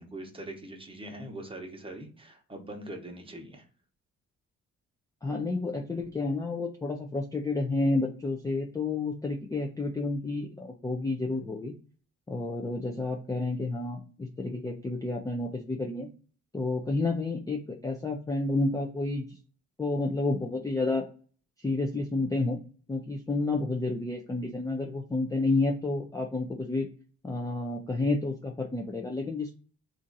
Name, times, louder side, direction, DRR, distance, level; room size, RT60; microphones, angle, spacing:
voice 1, 0.0-3.7, right 1 dB, 15° right, 2 dB, 0.9 m, -42 dB
voice 2, 5.2-11.7 12.3-16.1 16.5-19.4 19.8-21.0 21.6-22.6 22.9-26.9 27.2-29.5, left 2 dB, 10° left, 1 dB, 0.4 m, -30 dB
2.7 x 2.5 x 3.8 m, 0.40 s
cardioid pair, 90°, 30 cm